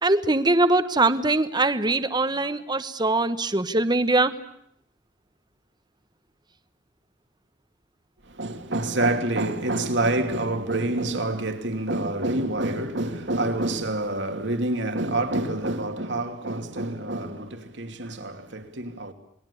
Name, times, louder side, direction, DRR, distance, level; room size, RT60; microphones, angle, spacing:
voice 1, 0.0-4.3, right 2 dB, 25° right, 1.2 m, -22 dB
voice 2, 8.4-19.1, right 2 dB, 70° right, 2.8 m, -27 dB
28.5 x 21.5 x 8.5 m
head